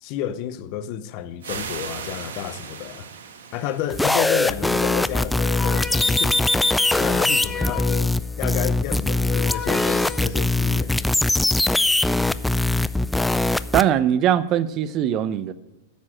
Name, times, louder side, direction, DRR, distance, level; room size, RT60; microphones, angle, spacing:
voice 1, 0.0-3.1 3.5-6.4 7.0-11.1, left 11 dB, 50° left, 0.8 m, -31 dB
sound 1, 1.4-5.1, right 6 dB, 85° right, 1.5 m, -37 dB
sound 2, 3.9-13.8, left 2 dB, 5° left, 0.4 m, -21 dB
sound 3, 5.1-8.3 9.0-10.2, left 8 dB, 25° left, 1.5 m, -33 dB
voice 2, 13.7-15.5, right 10 dB, 40° right, 0.7 m, -21 dB
10.0 x 7.5 x 6.2 m
hypercardioid pair, 120°, 0 cm